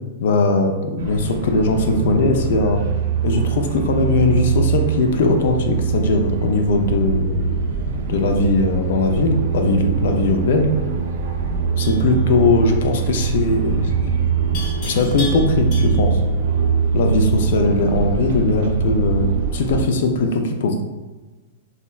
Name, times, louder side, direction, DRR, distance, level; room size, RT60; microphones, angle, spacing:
voice 1, 0.2-2.8 3.2-10.7 11.8-14.1 14.5-16.2 16.9-20.8, left 3 dB, 65° left, 5 dB, 0.3 m, -20 dB
sound 1, 1.0-19.8, right 6 dB, 60° right, 0.4 m, -22 dB
Livestock farm animals working animals, 11.8-12.1 14.5-16.2, left 3 dB, 45° left, 1.3 m, -34 dB
3.6 x 2.1 x 2.3 m, 1.2 s
supercardioid pair, 160°, 0 cm